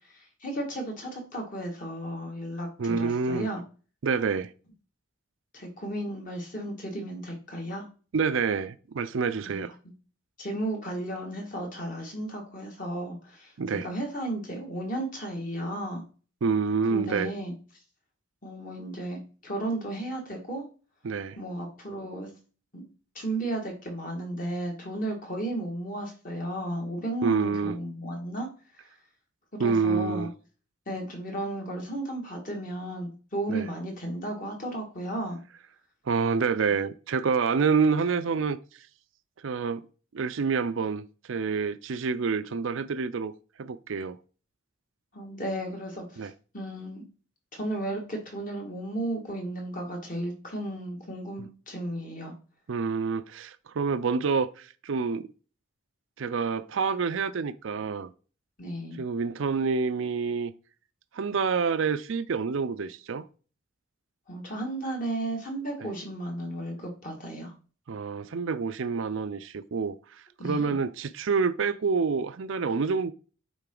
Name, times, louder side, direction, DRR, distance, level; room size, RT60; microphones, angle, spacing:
voice 1, 0.1-3.6 5.5-7.9 9.5-9.7 10.4-13.5 13.8-16.0 16.9-17.5 18.4-20.6 21.4-22.3 22.7-22.8 23.2-28.5 29.5-30.3 30.9-35.4 45.1-46.3 46.5-47.0 47.5-52.3 58.6-59.0 64.3-67.5 70.4-70.8, right 1 dB, 40° left, 1.9 m, -34 dB
voice 2, 2.8-3.5 4.0-4.5 8.1-9.8 13.6-13.9 16.4-17.3 21.0-21.4 27.2-27.8 29.6-30.3 33.5-33.7 36.1-38.6 39.4-39.8 40.1-43.3 43.6-44.2 46.2-46.3 52.7-55.3 56.2-58.1 59.0-60.5 61.1-63.3 65.8-65.9 67.9-73.1, right 5 dB, 70° right, 0.5 m, -27 dB
8.9 x 3.9 x 3.8 m
head